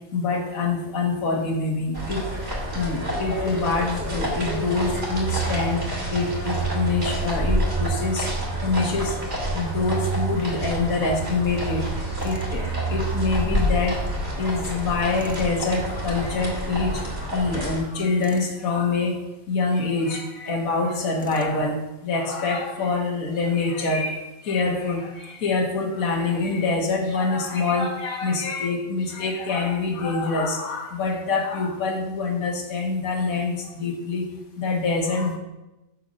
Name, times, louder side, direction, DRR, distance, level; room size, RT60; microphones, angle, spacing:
voice 1, 0.1-2.3 2.7-5.8 6.1-8.3 8.6-19.2 19.5-34.3 34.6-35.4, left 3 dB, 70° left, 0 dB, 1.7 m, -25 dB
sound 1, 1.9-17.8, right 1 dB, 45° right, 2.5 m, -28 dB
Tools, 12.2-12.6 15.1-15.5 18.2-18.6 21.2-21.6, left 1 dB, 15° left, 0.3 m, -43 dB
10.0 x 4.1 x 6.2 m, 0.99 s
omnidirectional pair, 1.5 m